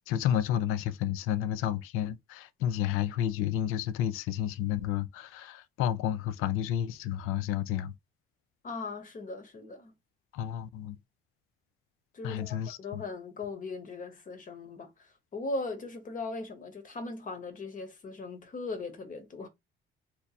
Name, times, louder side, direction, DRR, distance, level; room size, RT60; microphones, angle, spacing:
voice 1, 0.0-7.9 10.3-11.0 12.2-13.0, left 10 dB, 85° left, 0.4 m, -31 dB
voice 2, 8.6-9.9 12.1-19.5, left 3 dB, 40° left, 0.9 m, -39 dB
2.8 x 2.2 x 3.9 m
cardioid pair, 105°, 21 cm